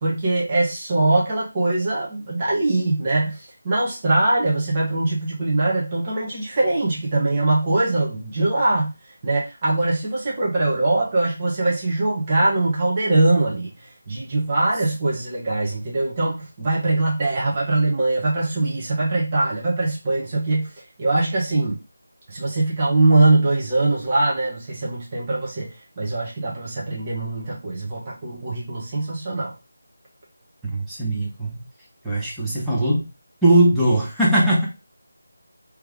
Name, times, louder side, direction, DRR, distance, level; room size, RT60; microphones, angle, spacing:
voice 1, 0.0-8.9 9.2-21.8 22.3-29.5, right 2 dB, 30° right, -5 dB, 1.4 m, -22 dB
voice 2, 30.7-31.6 32.0-33.0 33.4-34.6, right 1 dB, ahead, -8 dB, 1.1 m, -19 dB
3.3 x 3.3 x 3.6 m, 0.28 s
figure-of-eight pair, 160°, 0 cm